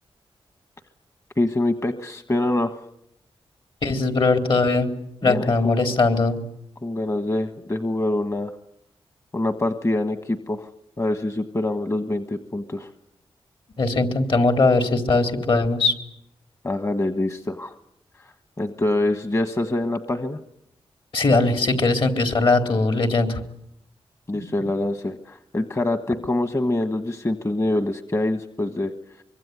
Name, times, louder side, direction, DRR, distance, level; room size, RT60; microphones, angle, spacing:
voice 1, 1.4-2.8 5.2-5.8 6.8-8.5 9.3-10.7 11.0-12.9 16.6-17.7 18.6-20.4 24.3-28.9, left 2 dB, 30° left, 9 dB, 1.4 m, -25 dB
voice 2, 3.8-4.9 5.2-6.4 13.8-15.9 21.1-23.4, left 3 dB, 60° left, 6 dB, 4.0 m, -20 dB
24.5 x 24.0 x 9.7 m, 0.74 s
cardioid pair, 75°, 10 cm